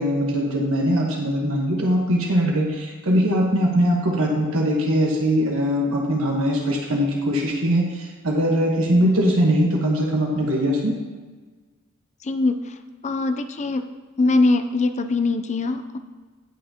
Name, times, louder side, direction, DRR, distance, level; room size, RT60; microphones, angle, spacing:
voice 1, 0.0-10.9, equal, 70° right, -1 dB, 1.3 m, -21 dB
voice 2, 12.2-12.7 13.0-13.9 14.2-16.0, left 3 dB, 35° left, 9 dB, 0.5 m, -22 dB
17.5 x 5.8 x 2.9 m, 1.3 s
head